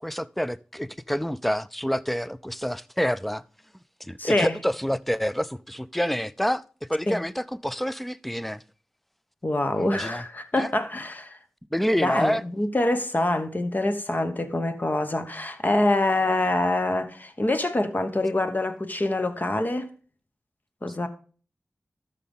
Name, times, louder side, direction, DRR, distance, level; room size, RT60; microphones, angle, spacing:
voice 1, 0.0-3.4 4.0-8.6 9.7-10.2 10.6-10.7 11.7-12.4, equal, 5° left, 0.4 m, -28 dB
voice 2, 4.2-4.6 7.1-7.2 9.4-11.4 11.9-19.9 20.8-21.1, left 2 dB, 35° left, 1.2 m, -25 dB
12.5 x 6.7 x 3.7 m
wide cardioid pair, 60°, 5 cm